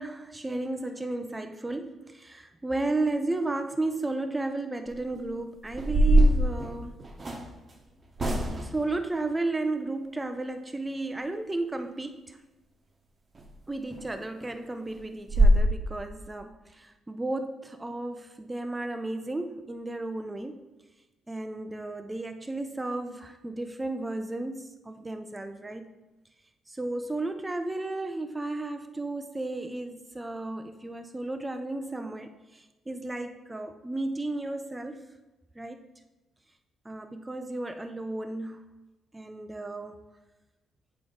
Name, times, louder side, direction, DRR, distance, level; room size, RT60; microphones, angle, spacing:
voice 1, 0.0-7.0 8.5-12.4 13.7-20.6 21.3-25.9 26.7-35.1 35.5-35.8 36.8-38.6 39.1-40.0, right 2 dB, 15° right, 7 dB, 0.5 m, -33 dB
sound 1, 4.9-5.2 5.7-7.5 8.2-8.8 13.3-13.5 13.9-14.0 14.4-14.5 14.9-15.0 15.3-15.6, right 1 dB, 35° right, 1.0 m, -22 dB
7.8 x 4.7 x 3.9 m, 1.1 s
cardioid pair, 90°, 0 cm